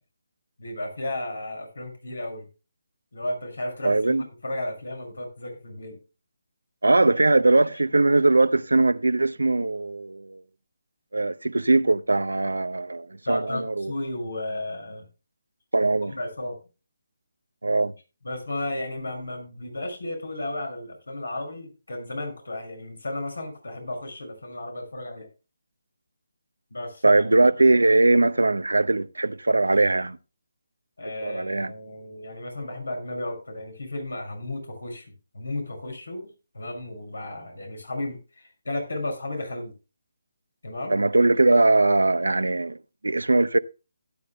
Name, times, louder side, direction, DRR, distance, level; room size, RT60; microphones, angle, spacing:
voice 1, 0.6-2.5 3.1-6.0 13.2-15.1 16.1-16.6 18.2-25.3 26.7-27.2 31.0-35.1 35.3-36.3 36.5-39.7 40.6-41.0, left 1 dB, 80° left, 6.1 m, -33 dB
voice 2, 3.8-4.2 6.8-10.4 11.1-13.9 15.7-16.1 17.6-17.9 27.0-30.2 31.2-31.7 40.9-42.8 43.0-43.6, right 2 dB, 85° right, 0.7 m, -20 dB
17.0 x 10.0 x 2.2 m
figure-of-eight pair, 155°, 0 cm